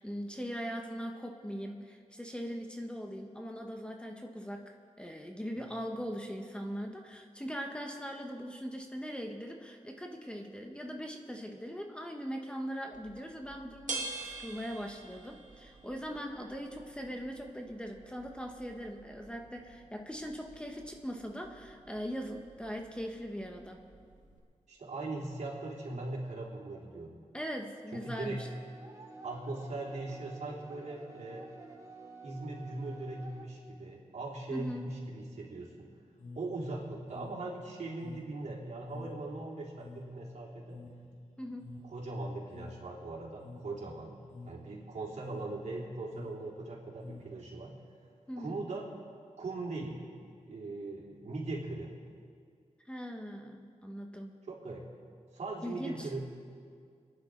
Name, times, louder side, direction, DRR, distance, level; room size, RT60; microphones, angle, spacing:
voice 1, 0.0-23.8 27.3-28.5 34.5-34.9 41.4-41.8 48.3-48.6 52.9-54.4 55.6-56.1, equal, 10° left, 2 dB, 1.1 m, -40 dB
sound 1, 12.9-24.4, right 3 dB, 80° right, 1.7 m, -48 dB
voice 2, 24.7-27.2 27.9-28.4 29.2-31.5 32.2-35.9 36.4-40.8 41.8-44.2 44.5-47.7 48.4-48.9 49.4-50.0 50.4-51.9 54.5-54.8 55.3-56.2, right 2 dB, 65° right, -4 dB, 3.5 m, -40 dB
sound 2, 28.0-33.4, right 4 dB, 25° right, 2.6 m, -50 dB
sound 3, 36.2-47.8, left 2 dB, 75° left, 1.5 m, -50 dB
27.0 x 10.5 x 3.9 m, 2.2 s
wide cardioid pair, 95°, 13 cm